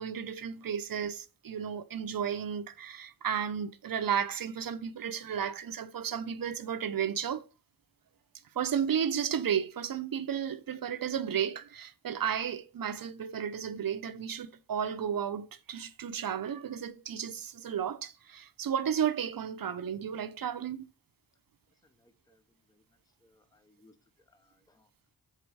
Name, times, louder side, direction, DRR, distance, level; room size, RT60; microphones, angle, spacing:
voice 1, 0.0-7.4 8.6-20.9, right 8 dB, 55° right, 0.7 m, -33 dB
voice 2, 22.0-22.4 22.7-22.8 23.2-23.9 24.3-24.9, left 2 dB, 10° left, 0.6 m, -65 dB
4.6 x 4.1 x 5.4 m
cardioid pair, 55°, 40 cm